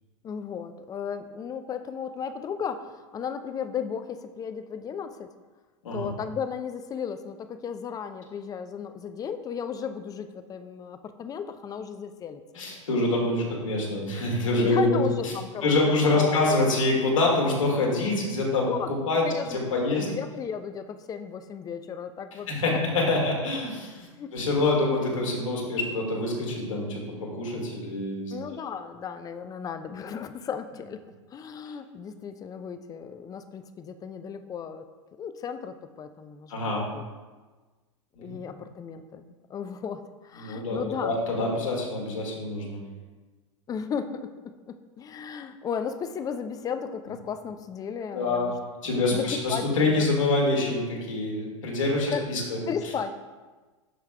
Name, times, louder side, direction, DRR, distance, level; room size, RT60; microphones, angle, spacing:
voice 1, 0.2-5.3 5.9-12.4 14.6-16.5 18.6-22.8 24.1-24.3 28.3-31.0 31.3-34.9 35.2-37.0 38.2-41.2 43.7-48.6 49.1-50.3 52.1-52.3 52.7-53.1, left 7 dB, 20° left, 10 dB, 0.5 m, -35 dB
voice 2, 12.6-15.3 15.6-18.7 19.1-19.2 19.5-20.1 22.5-28.6 36.5-36.9 38.2-38.3 40.4-42.8 48.1-48.5 48.8-52.6, left 2 dB, 75° left, -2 dB, 2.0 m, -26 dB
12.5 x 4.6 x 2.2 m, 1.3 s
hypercardioid pair, 95°, 17 cm